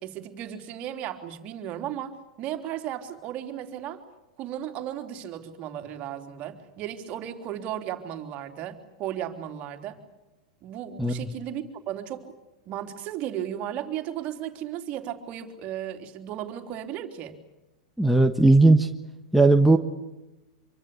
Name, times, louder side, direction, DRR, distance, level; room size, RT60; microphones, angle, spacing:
voice 1, 0.0-4.0 4.4-10.0 10.6-12.4 12.7-17.3, right 11 dB, 40° right, 6 dB, 3.3 m, -35 dB
voice 2, 18.0-18.9 19.3-19.8, right 2 dB, ahead, 4 dB, 1.5 m, -17 dB
26.5 x 24.0 x 8.4 m, 0.98 s
hypercardioid pair, 100°, 4 cm